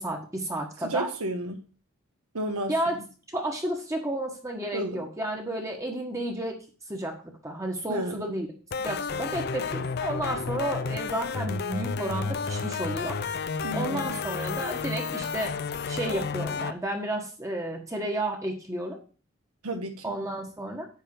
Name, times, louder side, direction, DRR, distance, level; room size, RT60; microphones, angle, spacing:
voice 1, 0.0-1.1 2.7-3.0 3.3-6.6 6.9-8.5 8.8-13.2 13.7-15.6 15.9-19.0 20.0-20.9, right 1 dB, 15° right, 1.3 m, -32 dB
voice 2, 0.8-1.7 2.3-3.0 4.7-5.0 7.9-8.3 13.6-14.2 19.6-20.2, right 1 dB, 90° right, 1.2 m, -32 dB
sound 1, 8.7-16.7, left 5 dB, 45° left, 0.4 m, -31 dB
10.0 x 3.6 x 7.1 m
head